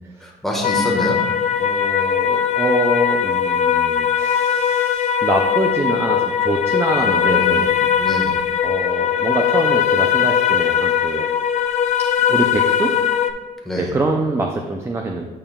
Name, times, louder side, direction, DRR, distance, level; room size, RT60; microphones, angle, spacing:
voice 1, 0.2-1.2 7.0-7.7 8.0-8.3 13.6-13.9, equal, ahead, -2 dB, 1.4 m, -25 dB
sound 1, 0.6-13.3, left 8 dB, 45° left, 0.4 m, -19 dB
voice 2, 1.6-7.9 8.6-11.3 12.3-12.9 13.8-15.2, right 2 dB, 15° right, 3 dB, 0.4 m, -24 dB
8.7 x 5.4 x 2.3 m, 1.2 s
cardioid pair, 110°, 17 cm